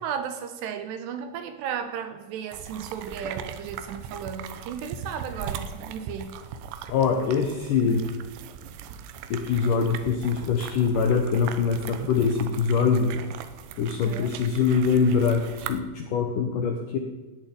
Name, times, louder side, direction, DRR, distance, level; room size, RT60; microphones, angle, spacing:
voice 1, 0.0-6.4 14.0-14.4, right 7 dB, 75° right, 8 dB, 2.9 m, -34 dB
sound 1, 2.5-15.8, right 8 dB, 90° right, 3.5 m, -39 dB
voice 2, 6.9-8.0 9.3-13.1 13.8-17.0, left 5 dB, 75° left, 3 dB, 2.0 m, -23 dB
17.0 x 7.2 x 9.6 m, 1.2 s
omnidirectional pair, 5.4 m